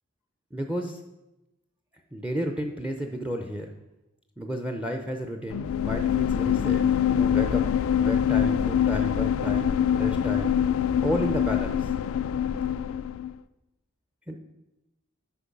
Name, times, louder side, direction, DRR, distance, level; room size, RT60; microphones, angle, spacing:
voice 1, 0.5-1.0 2.1-3.7 4.4-7.7 8.0-10.6 11.0-11.9 14.3-14.4, equal, 5° right, 5 dB, 0.5 m, -32 dB
sound 1, 5.5-13.3, left 9 dB, 65° left, 0.3 m, -24 dB
8.5 x 5.3 x 5.2 m, 0.97 s
head